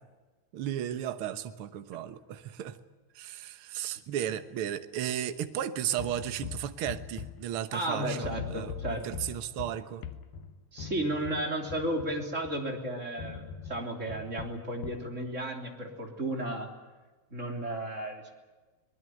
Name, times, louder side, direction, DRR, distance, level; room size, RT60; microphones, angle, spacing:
voice 1, 0.5-2.8 3.1-10.0, right 11 dB, 70° right, 10 dB, 1.3 m, -35 dB
sound 1, 6.0-7.9 8.2-12.7 13.2-15.1, left 8 dB, 80° left, 3.1 m, -42 dB
voice 2, 7.7-9.1 10.7-16.7 17.3-18.3, right 1 dB, 20° right, 2 dB, 3.3 m, -33 dB
24.0 x 20.0 x 9.3 m, 1.3 s
omnidirectional pair, 4.1 m